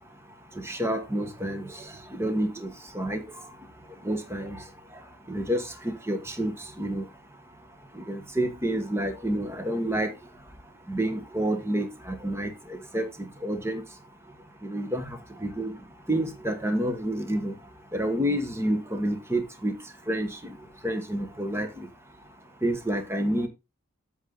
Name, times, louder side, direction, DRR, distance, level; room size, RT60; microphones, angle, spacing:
voice 1, 0.6-1.7 2.1-3.2 4.0-4.6 5.3-6.5 6.8-7.0 8.0-10.1 10.9-12.5 12.9-13.1 13.4-13.8 14.6-15.7 16.1-17.5 17.9-19.7 20.1-20.5 20.8-21.9 22.6-23.5, right 1 dB, 10° right, 1.2 m, -29 dB
8.2 x 7.1 x 3.8 m
head